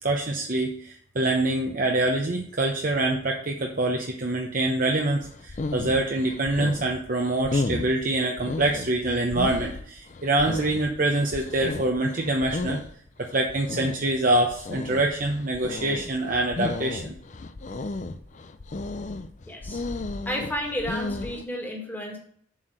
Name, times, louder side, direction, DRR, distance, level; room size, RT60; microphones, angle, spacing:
voice 1, 0.0-12.8 13.2-17.1, right 2 dB, 40° right, 1 dB, 0.8 m, -25 dB
sound 1, 5.2-21.4, left 3 dB, 35° left, 0.4 m, -34 dB
voice 2, 19.5-19.8 20.3-22.2, equal, 10° left, 0 dB, 1.8 m, -32 dB
7.3 x 4.6 x 6.5 m, 0.62 s
head